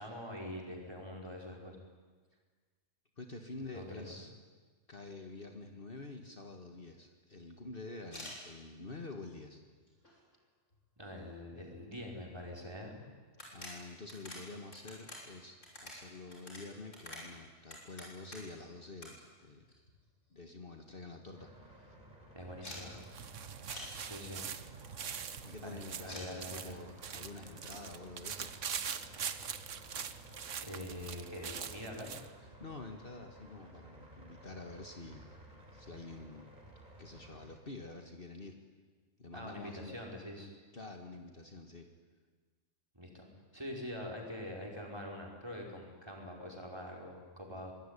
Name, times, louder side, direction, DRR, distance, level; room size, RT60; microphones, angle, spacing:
voice 1, 0.0-1.8 3.7-4.0 11.0-13.0 22.3-23.0 24.0-24.4 25.6-26.8 30.6-32.2 39.3-40.5 42.9-43.3 43.5-47.7, left 1 dB, 20° right, -1 dB, 5.4 m, -44 dB
voice 2, 3.2-4.3 4.9-9.6 13.5-19.7 20.3-21.9 25.4-28.5 32.6-35.3 35.7-36.5 37.0-38.6 39.2-40.0 40.7-41.9, left 3 dB, 45° left, 4 dB, 1.9 m, -48 dB
sound 1, 8.0-8.4 9.1-9.2 9.7-10.4 10.7-10.8 11.0-11.1 12.5-12.6 12.9-13.0 13.3-18.6 19.0-19.1 19.4-20.2 20.5-20.6 20.9-21.0 21.2-21.6 22.6-22.8 23.7-23.9 26.1-26.3, left 1 dB, 70° left, 6.8 m, -48 dB
sound 2, 21.3-37.6, right 1 dB, 35° right, 5.0 m, -55 dB
sound 3, 22.8-32.3, right 7 dB, 70° right, 1.4 m, -43 dB
24.5 x 20.5 x 10.0 m, 1.4 s
omnidirectional pair, 1.3 m